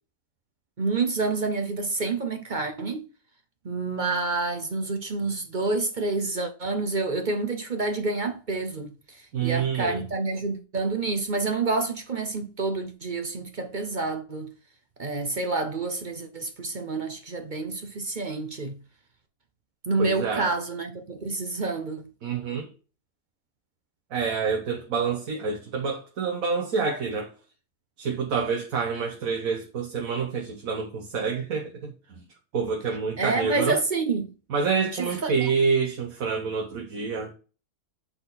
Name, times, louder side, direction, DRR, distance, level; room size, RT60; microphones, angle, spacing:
voice 1, 0.8-3.1 3.6-14.5 15.0-18.8 19.9-22.1 33.2-34.3 34.9-35.5, right 3 dB, 40° right, 0.8 m, -28 dB
voice 2, 9.3-10.0 20.0-20.5 22.2-22.7 24.1-27.3 28.0-32.2 32.5-33.8 34.5-37.3, right 5 dB, 60° right, 1.5 m, -27 dB
7.8 x 4.2 x 4.1 m
omnidirectional pair, 1.8 m